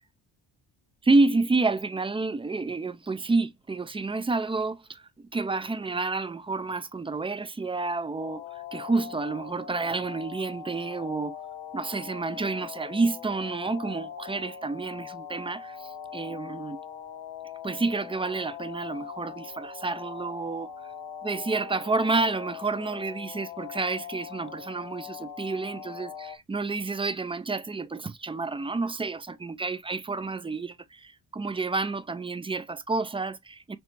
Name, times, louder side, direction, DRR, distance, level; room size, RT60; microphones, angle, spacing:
voice 1, 1.0-11.4 11.7-16.8 17.6-20.7 21.2-33.8, right 3 dB, 15° right, 0.3 m, -29 dB
sound 1, 8.2-26.4, left 8 dB, 75° left, 1.2 m, -41 dB
4.5 x 3.3 x 2.5 m
hypercardioid pair, 45°, 49 cm